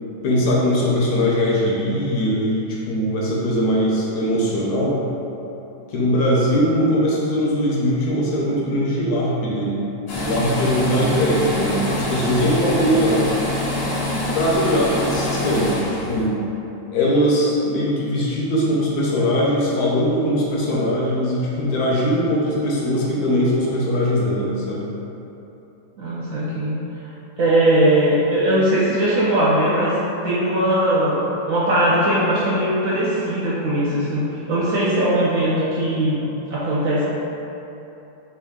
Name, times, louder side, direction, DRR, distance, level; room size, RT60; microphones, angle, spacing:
voice 1, 0.2-5.0 5.9-9.8 10.2-13.2 14.3-15.8 16.1-16.4 16.9-24.9, equal, 70° left, -5 dB, 1.1 m, -20 dB
sound 1, 10.1-16.3, left 1 dB, 50° left, 0.7 m, -25 dB
voice 2, 26.0-26.8 27.4-31.2 31.4-34.2 34.5-37.0, right 1 dB, 65° right, -8 dB, 0.9 m, -19 dB
4.5 x 2.5 x 3.5 m, 3.0 s
omnidirectional pair, 1.9 m